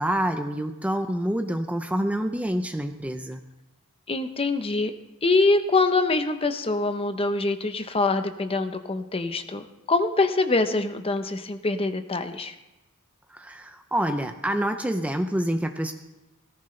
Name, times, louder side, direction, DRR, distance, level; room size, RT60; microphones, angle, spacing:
voice 1, 0.0-3.4 13.3-15.9, right 1 dB, 5° right, 7 dB, 0.5 m, -27 dB
voice 2, 4.1-4.9 5.2-12.5, left 3 dB, 25° left, 8 dB, 0.8 m, -24 dB
17.5 x 14.5 x 3.2 m, 1.0 s
head